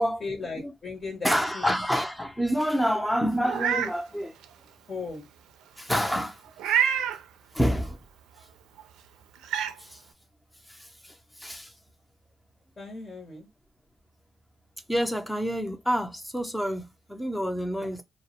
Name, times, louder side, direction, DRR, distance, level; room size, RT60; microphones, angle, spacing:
voice 1, 0.2-1.7 4.9-5.3 12.8-13.5, left 4 dB, 35° left, 0.8 m, -36 dB
voice 2, 1.2-4.3 5.8-6.4 6.7-6.8 7.5-8.0 9.8-10.0 10.7-11.7 14.9-18.0, equal, 5° left, 0.5 m, -28 dB
Meow, 3.4-3.9 4.4-4.5 6.6-7.2 8.8-8.9 9.4-9.7, right 8 dB, 90° right, 0.3 m, -26 dB
2.3 x 2.0 x 2.8 m
cardioid pair, 90°, 0 cm